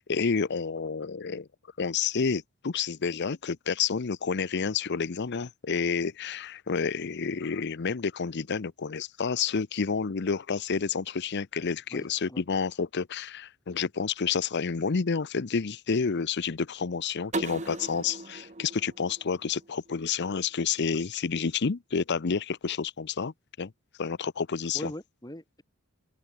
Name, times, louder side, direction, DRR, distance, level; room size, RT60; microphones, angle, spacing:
voice 1, 0.0-1.5 1.8-23.7 24.0-24.9, left 5 dB, 55° left, 0.7 m, -29 dB
voice 2, 11.9-12.4 24.7-25.6, left 1 dB, 20° left, 6.5 m, -41 dB
sound 1, 17.3-20.1, right 2 dB, 35° right, 2.1 m, -38 dB
open air
head